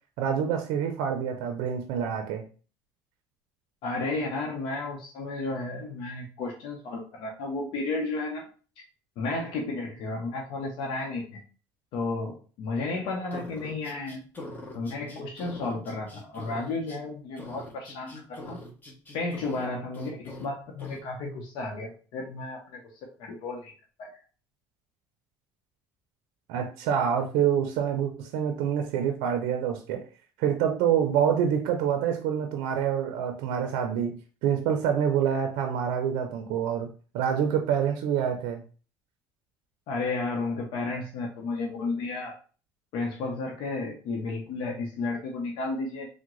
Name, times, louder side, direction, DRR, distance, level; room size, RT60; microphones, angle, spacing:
voice 1, 0.2-2.4 26.5-30.0 30.4-38.6, right 8 dB, 85° right, 5 dB, 0.5 m, -27 dB
voice 2, 3.8-8.5 9.2-11.4 11.9-14.2 14.7-18.6 19.1-22.8 23.2-23.7 24.0-24.1 39.9-42.3 42.9-46.1, left 3 dB, 70° left, 0 dB, 0.7 m, -32 dB
sound 1, 13.3-17.0 17.4-19.7 19.9-20.5 20.8-21.0, left 2 dB, 20° left, 0.9 m, -43 dB
3.4 x 2.1 x 3.1 m, 0.38 s
supercardioid pair, 100°, 8 cm